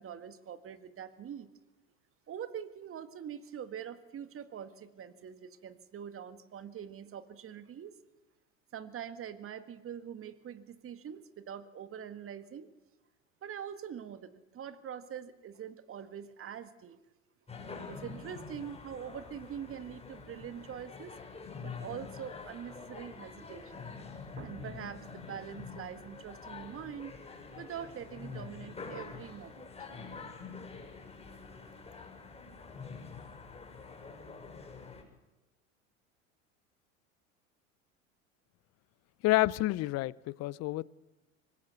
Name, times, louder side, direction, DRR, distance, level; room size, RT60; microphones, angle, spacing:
voice 1, 0.0-1.5 2.3-7.9 8.7-12.7 13.4-17.0 17.9-21.1 21.6-23.8 24.4-27.2 27.6-29.7, right 8 dB, 35° right, 11 dB, 1.9 m, -44 dB
sound 1, 17.5-35.0, left 4 dB, 15° left, 6.8 m, -46 dB
voice 2, 39.2-40.8, left 18 dB, 40° left, 23 dB, 0.7 m, -29 dB
24.5 x 20.0 x 6.9 m, 1.0 s
hypercardioid pair, 75°, 39 cm